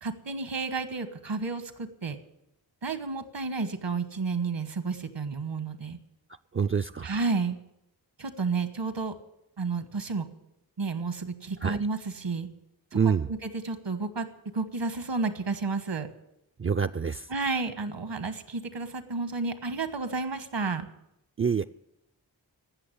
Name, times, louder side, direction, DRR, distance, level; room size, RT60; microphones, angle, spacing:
voice 1, 0.0-2.2 2.8-6.0 7.0-7.6 8.2-9.1 9.6-10.3 10.8-12.5 13.3-14.3 14.5-16.1 17.3-20.9, right 4 dB, 75° right, 10 dB, 1.4 m, -31 dB
voice 2, 6.5-7.1 11.6-11.8 12.9-13.3 16.6-17.3 21.4-21.6, right 6 dB, 30° right, 8 dB, 0.4 m, -26 dB
15.5 x 6.3 x 9.7 m, 0.83 s
cardioid pair, 40°, 43 cm